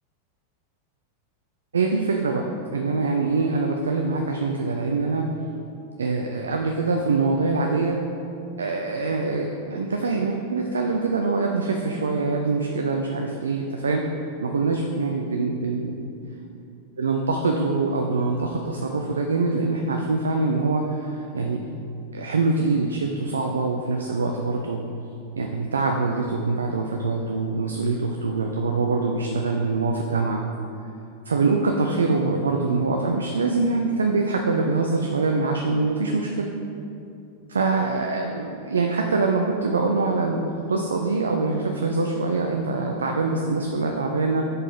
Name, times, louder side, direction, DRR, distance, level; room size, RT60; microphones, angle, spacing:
voice 1, 1.7-5.3 6.0-8.0 8.6-14.1 14.4-16.0 17.0-21.6 22.1-24.8 25.4-30.4 31.3-36.5 37.5-44.4, right 3 dB, 70° right, 2 dB, 0.4 m, -24 dB
5.0 x 4.4 x 5.3 m, 2.6 s
figure-of-eight pair, 90°, 0 cm